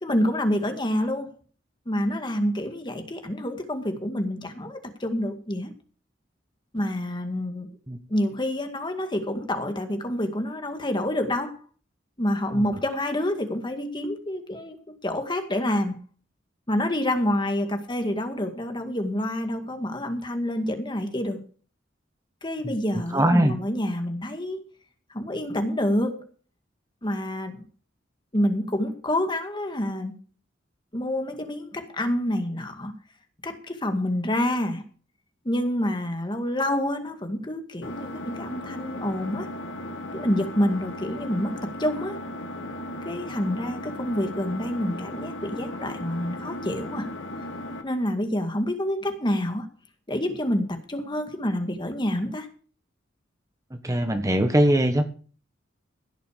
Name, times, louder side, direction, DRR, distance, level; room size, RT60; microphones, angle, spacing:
voice 1, 0.0-1.3 1.9-5.7 6.7-7.7 8.1-11.6 12.2-14.8 15.0-16.0 16.7-21.4 22.4-24.6 25.1-26.3 27.0-27.5 28.3-30.1 30.9-32.9 33.4-34.8 35.5-39.5 40.1-41.5 41.8-42.2 43.0-47.1 47.8-49.7 50.1-52.5, left 1 dB, 25° left, 6 dB, 2.0 m, -27 dB
voice 2, 22.6-23.5 53.8-55.0, right 1 dB, 15° right, 7 dB, 1.2 m, -22 dB
Engine, 37.8-47.8, left 1 dB, 80° left, 2.3 m, -36 dB
16.5 x 6.8 x 6.6 m, 0.40 s
head